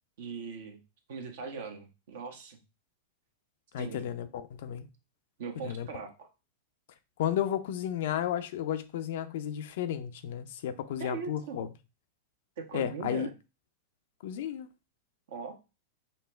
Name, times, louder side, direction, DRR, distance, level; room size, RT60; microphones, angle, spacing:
voice 1, 0.2-0.8 1.1-2.6 3.8-4.0 5.4-6.3 11.0-11.6 12.6-13.3 15.3-15.5, right 5 dB, 70° right, 1.0 m, -40 dB
voice 2, 3.7-4.9 5.6-5.9 7.2-11.7 12.7-13.3 14.2-14.7, left 10 dB, 65° left, 0.5 m, -33 dB
5.5 x 2.1 x 3.3 m
hypercardioid pair, 105°, 0 cm